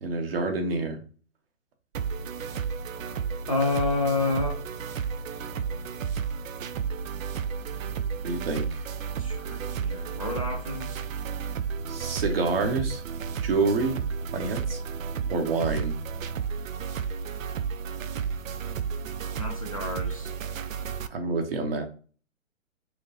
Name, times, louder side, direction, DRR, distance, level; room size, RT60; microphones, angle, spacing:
voice 1, 0.0-1.0 8.2-8.8 11.9-13.0 13.4-14.0 14.3-14.8 15.3-15.9 21.1-21.8, right 3 dB, 45° right, 1.1 m, -27 dB
sound 1, 1.9-21.1, right 6 dB, 80° right, 0.5 m, -32 dB
voice 2, 3.5-4.6 9.1-11.0 19.4-20.3, left 3 dB, 30° left, 0.4 m, -29 dB
6.2 x 2.1 x 2.8 m
hypercardioid pair, 150°, 39 cm